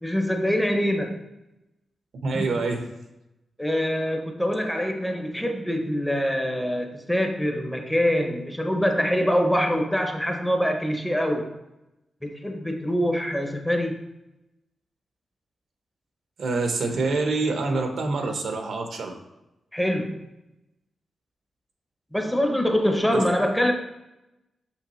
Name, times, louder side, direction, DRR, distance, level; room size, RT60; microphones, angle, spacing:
voice 1, 0.0-1.2 2.3-2.4 3.6-11.5 12.2-14.0 19.7-20.3 22.1-23.7, equal, 5° left, 4 dB, 0.6 m, -24 dB
voice 2, 2.2-2.8 16.4-19.1 23.1-23.2, right 3 dB, 75° right, 4 dB, 0.9 m, -26 dB
6.2 x 5.8 x 3.0 m, 0.93 s
wide cardioid pair, 170°, 0 cm